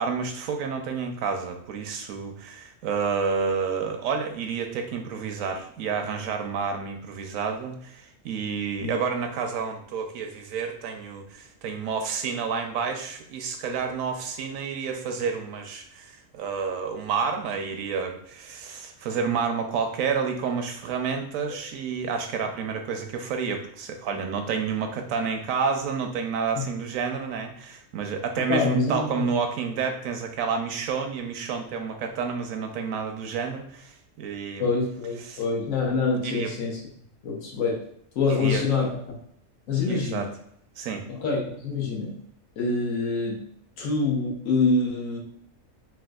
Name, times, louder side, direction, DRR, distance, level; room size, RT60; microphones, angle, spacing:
voice 1, 0.0-34.7 35.2-35.4 36.2-36.5 38.3-38.6 39.9-40.3 40.8-41.0, right 5 dB, 80° right, 5 dB, 1.0 m, -29 dB
voice 2, 28.5-29.3 34.6-36.8 37.2-37.8 38.1-39.0 39.7-40.3 41.1-42.2 42.6-43.5 43.8-45.2, left 3 dB, 80° left, -1 dB, 1.2 m, -25 dB
4.2 x 2.3 x 2.3 m, 0.68 s
omnidirectional pair, 1.4 m